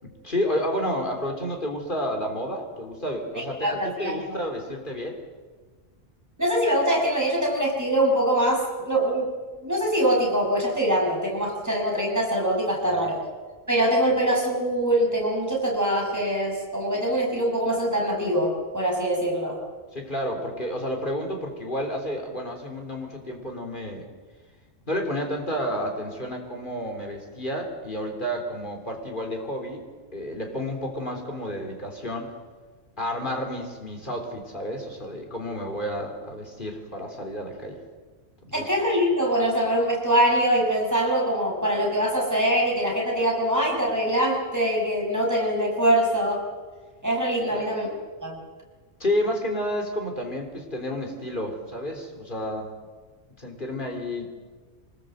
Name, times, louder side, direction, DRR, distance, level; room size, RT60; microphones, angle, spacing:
voice 1, 0.0-5.2 12.8-13.1 19.9-24.1 24.9-29.8 30.1-32.3 33.0-37.8 38.5-38.7 47.4-47.7 49.0-52.7 53.4-54.4, equal, 40° left, 2 dB, 3.8 m, -30 dB
voice 2, 3.6-4.4 6.4-9.3 9.6-13.2 13.7-19.6 38.5-46.4 47.0-47.9 48.2-48.4, right 1 dB, 15° right, -1 dB, 5.9 m, -23 dB
24.5 x 20.5 x 7.9 m, 1.4 s
omnidirectional pair, 1.3 m